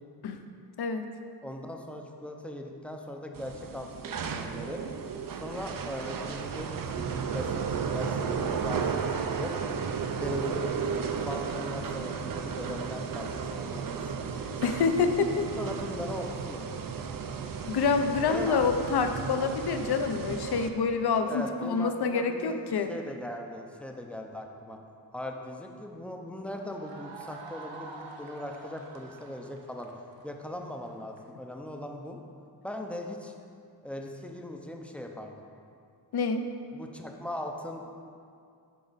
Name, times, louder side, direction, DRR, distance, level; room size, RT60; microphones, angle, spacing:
voice 1, 0.8-1.1 14.6-15.5 17.7-22.9 36.1-36.4, left 5 dB, 65° left, 7 dB, 0.6 m, -27 dB
voice 2, 1.4-4.8 5.3-9.5 10.2-10.9 11.2-14.6 15.6-16.6 18.2-18.7 21.2-24.8 25.1-32.2 32.6-33.3 33.8-35.5 36.7-37.8, left 1 dB, 5° left, 2 dB, 0.5 m, -39 dB
sound 1, 3.3-20.7, right 6 dB, 50° right, 0.5 m, -34 dB
sound 2, 26.5-31.2, right 3 dB, 90° right, 0.9 m, -47 dB
10.0 x 5.3 x 4.0 m, 2.4 s
wide cardioid pair, 160°, 43 cm